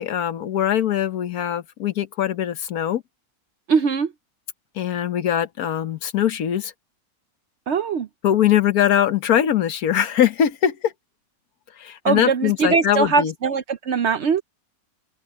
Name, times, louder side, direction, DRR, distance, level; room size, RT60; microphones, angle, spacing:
voice 1, 0.0-3.0 4.8-6.7 8.2-10.9 11.8-13.3, left 10 dB, 75° left, 1.4 m, -21 dB
voice 2, 3.7-4.1 7.7-8.1 12.0-14.4, right 5 dB, 60° right, 0.8 m, -21 dB
open air
omnidirectional pair, 1.6 m